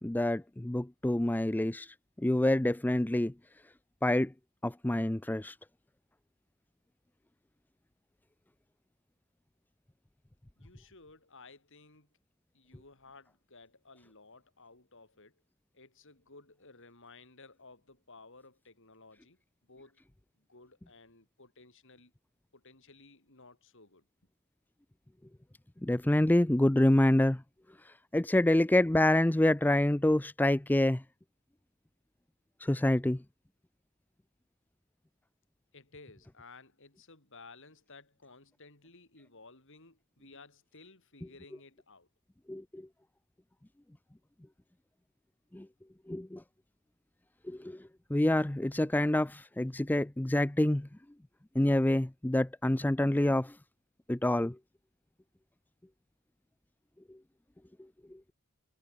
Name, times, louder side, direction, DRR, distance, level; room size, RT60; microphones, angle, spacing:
voice 1, 0.0-3.3 4.0-4.3 4.6-5.5 25.8-27.4 28.1-31.0 32.6-33.2 42.5-42.8 45.5-45.7 46.1-46.4 47.5-47.8 48.1-50.9 51.5-53.6 54.1-54.6, left 1 dB, 10° left, 0.5 m, -27 dB
voice 2, 10.6-12.1 12.5-15.4 15.7-20.0 20.4-22.1 22.5-24.1 35.7-42.1, left 3 dB, 60° left, 6.4 m, -56 dB
head